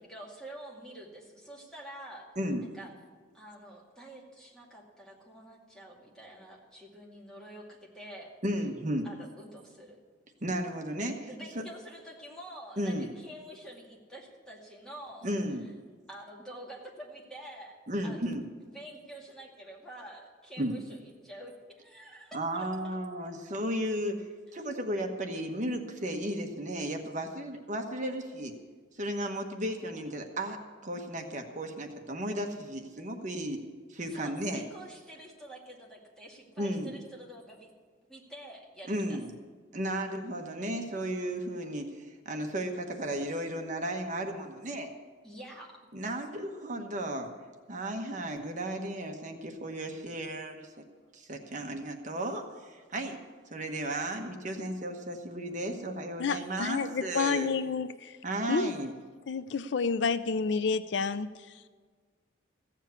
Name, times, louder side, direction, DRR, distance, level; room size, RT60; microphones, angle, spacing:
voice 1, 0.0-2.3 2.7-2.9 3.3-8.4 9.0-10.0 11.3-15.3 16.1-18.2 18.6-22.7 34.1-37.7 38.1-39.2 45.2-45.8, right 1 dB, 5° left, -3 dB, 2.2 m, -47 dB
voice 2, 8.4-9.1 10.4-11.3 11.5-11.6 12.8-13.1 15.2-15.7 17.9-18.4 20.6-20.7 22.3-28.5 28.9-30.6 30.8-33.6 33.9-34.6 36.6-37.0 38.9-39.3 39.7-44.9 45.9-47.3 47.7-50.7 51.1-53.2 53.5-57.5 58.2-58.9, right 1 dB, 40° right, 4 dB, 1.2 m, -34 dB
voice 3, 56.2-58.2 58.5-58.7 59.3-61.6, left 5 dB, 60° left, 13 dB, 0.4 m, -30 dB
15.5 x 7.4 x 8.2 m, 1.5 s
head